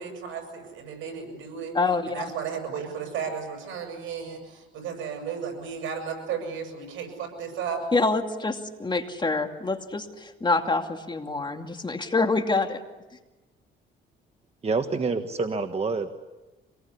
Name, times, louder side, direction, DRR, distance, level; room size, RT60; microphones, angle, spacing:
voice 1, 0.0-1.8 2.1-8.0, right 6 dB, 80° right, 4 dB, 7.5 m, -34 dB
voice 2, 1.7-2.2 7.9-12.8, left 3 dB, 25° left, 5 dB, 2.5 m, -26 dB
voice 3, 14.6-16.1, right 4 dB, 30° right, 7 dB, 1.5 m, -27 dB
26.0 x 19.5 x 9.9 m, 1.1 s
cardioid pair, 90°, 20 cm